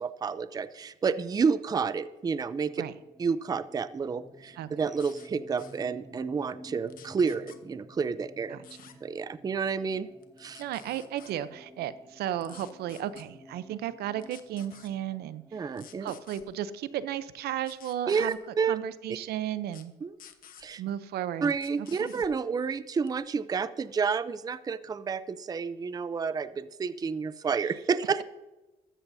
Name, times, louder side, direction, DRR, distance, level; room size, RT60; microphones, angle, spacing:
voice 1, 0.0-2.8 3.2-8.6 9.0-10.1 10.4-10.6 15.5-16.1 18.1-18.8 20.0-20.1 20.6-20.8 21.4-28.2, right 5 dB, 20° right, 14 dB, 0.5 m, -30 dB
sound 1, 2.3-17.9, equal, ahead, 1.5 m, -53 dB
sound 2, 4.9-5.3 5.6-5.8 6.9-7.6 8.6-8.9 10.2-11.3 12.4-13.2 14.2-14.9 15.7-16.4 17.6-18.4 19.7-19.8 20.2-20.6 21.5-22.3 22.9-23.2, left 9 dB, 55° left, 1.1 m, -52 dB
voice 2, 10.6-15.4 16.0-18.4 18.7-19.9 20.8-21.4 21.8-22.1, right 11 dB, 70° right, 14 dB, 0.6 m, -34 dB
13.5 x 13.0 x 2.7 m, 1.1 s
cardioid pair, 110°, 17 cm